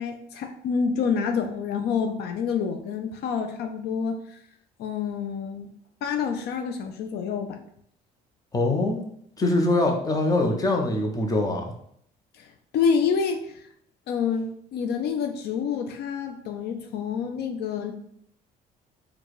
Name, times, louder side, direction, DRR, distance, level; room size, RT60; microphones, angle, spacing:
voice 1, 0.0-4.4 4.8-5.7 6.0-7.6 12.4-13.6 14.1-17.9, left 6 dB, 75° left, 5 dB, 0.5 m, -28 dB
voice 2, 8.5-9.0 9.4-11.7, left 2 dB, 20° left, 2 dB, 1.0 m, -23 dB
4.6 x 2.4 x 4.8 m, 0.68 s
cardioid pair, 110°, 17 cm